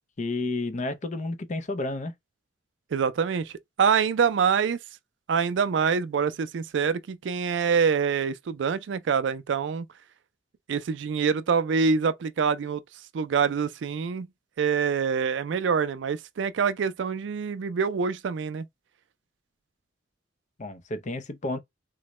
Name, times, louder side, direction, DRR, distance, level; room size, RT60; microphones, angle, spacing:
voice 1, 0.2-2.1 20.6-21.6, left 2 dB, 40° left, 0.6 m, -31 dB
voice 2, 2.9-3.5 3.8-4.8 5.3-9.9 10.7-12.8 13.1-14.3 14.6-18.7, right 6 dB, 70° right, 0.4 m, -25 dB
3.8 x 2.1 x 3.0 m
head